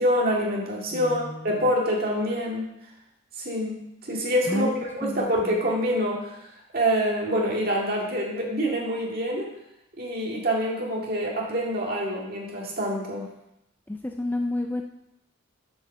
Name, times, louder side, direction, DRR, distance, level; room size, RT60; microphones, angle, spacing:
voice 1, 0.0-2.7 3.4-6.3 6.7-9.5 10.0-13.3, equal, 45° right, -2 dB, 2.1 m, -26 dB
voice 2, 0.9-1.2 4.5-5.3 13.9-14.8, left 2 dB, 10° left, 3 dB, 0.4 m, -29 dB
7.8 x 5.1 x 6.8 m, 0.81 s
head